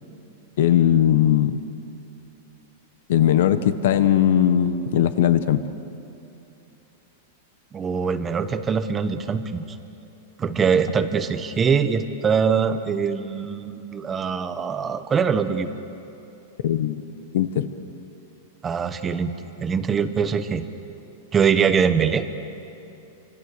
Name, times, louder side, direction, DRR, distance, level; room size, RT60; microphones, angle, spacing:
voice 1, 0.6-1.6 3.1-5.6 16.6-17.0 17.3-17.7, left 10 dB, 55° left, 12 dB, 1.1 m, -19 dB
voice 2, 7.7-9.6 10.4-15.7 18.6-19.3 19.6-20.6 21.3-22.3, right 6 dB, 10° right, 10 dB, 0.9 m, -23 dB
29.5 x 25.5 x 6.8 m, 2.8 s
supercardioid pair, 180°, 0 cm